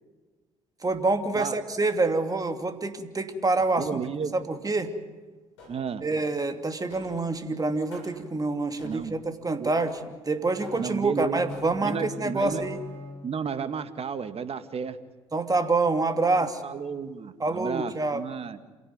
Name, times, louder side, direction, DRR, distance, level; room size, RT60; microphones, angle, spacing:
voice 1, 0.8-4.0 4.3-4.9 6.0-10.0 10.3-12.8 15.3-16.6 17.4-18.2, right 3 dB, 25° right, 7 dB, 2.8 m, -27 dB
voice 2, 3.8-4.3 5.7-6.0 8.8-9.2 9.6-9.7 10.8-11.4 11.8-12.6 13.2-15.0 16.4-18.6, right 6 dB, 45° right, 11 dB, 2.0 m, -32 dB
sound 1, 5.6-6.1 6.9-7.3 7.9-8.3 8.8-9.3 9.8-10.2 10.6-11.1 11.5-12.0 12.4-12.9, left 2 dB, 80° left, 7.4 m, -47 dB
sound 2, 10.2-13.7, left 2 dB, 85° right, 4.4 m, -42 dB
28.0 x 17.5 x 9.7 m, 1.3 s
hypercardioid pair, 50°, 14 cm